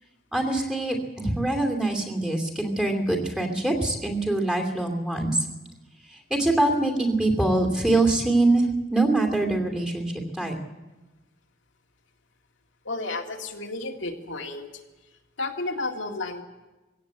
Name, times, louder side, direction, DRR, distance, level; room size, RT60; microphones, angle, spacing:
voice 1, 0.3-5.5 6.1-10.6, right 2 dB, 5° right, 2 dB, 2.7 m, -24 dB
voice 2, 12.8-14.7 15.4-16.4, left 2 dB, 75° left, 2 dB, 2.1 m, -32 dB
21.0 x 16.5 x 7.8 m, 1.1 s
head